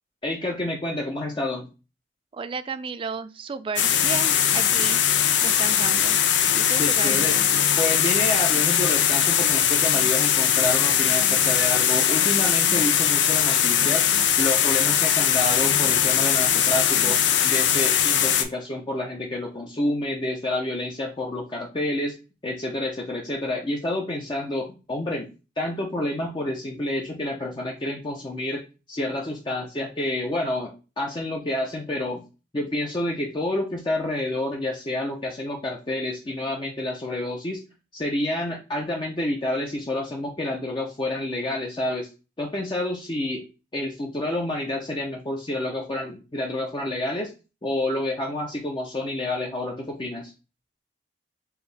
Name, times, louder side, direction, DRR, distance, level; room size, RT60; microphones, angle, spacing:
voice 1, 0.2-1.7 6.8-7.4 7.8-14.0 14.4-17.2 17.4-22.1 22.4-25.3 25.6-28.6 28.9-32.3 32.5-37.6 37.9-42.1 42.4-43.4 43.7-47.3 47.6-50.3, left 1 dB, 25° left, -1 dB, 0.6 m, -29 dB
voice 2, 2.3-5.0 5.4-6.2 6.5-7.2, right 5 dB, 30° right, 13 dB, 0.3 m, -33 dB
sound 1, 3.8-18.4, left 9 dB, 85° left, 0.5 m, -20 dB
4.6 x 2.7 x 3.3 m, 0.30 s
head